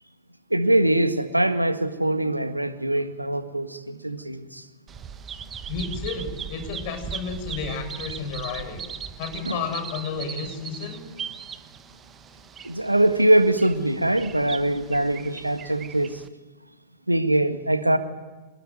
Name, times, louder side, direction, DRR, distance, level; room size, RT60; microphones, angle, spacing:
voice 1, 0.5-4.6 9.4-9.6 12.6-16.2 17.1-18.0, right 1 dB, 90° right, 9 dB, 1.8 m, -22 dB
Bird vocalization bird call bird song, 4.9-16.3, right 7 dB, 20° right, 1.3 m, -39 dB
voice 2, 5.7-8.8 9.2-11.0, left 5 dB, 45° left, 6 dB, 7.5 m, -32 dB
27.0 x 20.5 x 9.4 m, 1.2 s
figure-of-eight pair, 95°, 0 cm